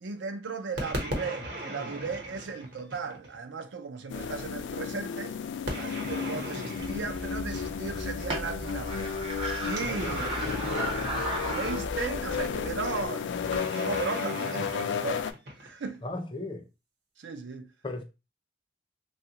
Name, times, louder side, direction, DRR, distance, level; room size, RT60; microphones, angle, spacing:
voice 1, 0.0-5.3 5.8-9.1 9.6-10.3 11.5-15.3 15.6-16.0 17.2-17.7, right 4 dB, 85° right, 0.5 m, -36 dB
sound 1, 0.8-3.4 5.7-8.0 9.7-12.1 13.5-16.0, equal, 65° right, 1.0 m, -38 dB
sound 2, 4.1-15.3, left 6 dB, 85° left, 0.3 m, -33 dB
sound 3, 6.8-13.1, right 1 dB, 30° right, 0.5 m, -35 dB
voice 2, 9.8-10.2 16.0-16.6 17.8-18.0, left 2 dB, 25° left, 0.4 m, -36 dB
3.2 x 2.4 x 2.8 m
head